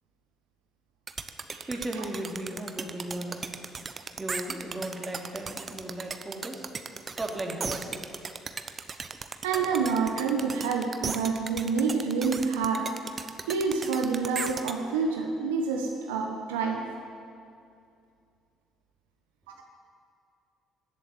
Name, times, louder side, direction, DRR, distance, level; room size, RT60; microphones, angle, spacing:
sound 1, 1.1-14.7, right 5 dB, 40° right, 0.9 m, -36 dB
voice 1, 1.6-3.5 3.8-6.7 7.2-8.1 8.4-8.6, right 1 dB, 20° right, 0 dB, 3.0 m, -36 dB
voice 2, 9.4-16.9, right 5 dB, 80° right, 2 dB, 1.2 m, -28 dB
16.0 x 7.6 x 9.5 m, 2.4 s
hypercardioid pair, 55°, 0 cm